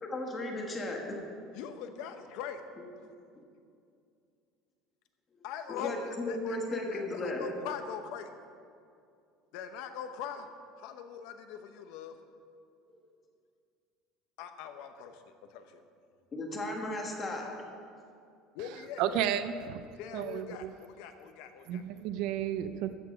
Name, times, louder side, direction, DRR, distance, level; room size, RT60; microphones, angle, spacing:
voice 1, 0.0-1.2 2.8-2.9 5.7-7.4 12.9-13.0 16.3-17.4, left 2 dB, 20° left, 1 dB, 1.4 m, -35 dB
voice 2, 1.5-2.6 5.4-6.6 6.9-8.3 9.5-10.5 10.8-12.2 14.4-15.2 15.5-15.8 18.5-19.3 20.0-21.8, left 7 dB, 65° left, 8 dB, 0.9 m, -41 dB
voice 3, 19.0-19.8 20.1-20.7 21.7-23.0, right 10 dB, 60° right, 11 dB, 0.4 m, -32 dB
14.0 x 5.9 x 5.8 m, 2.4 s
cardioid pair, 165°, 0 cm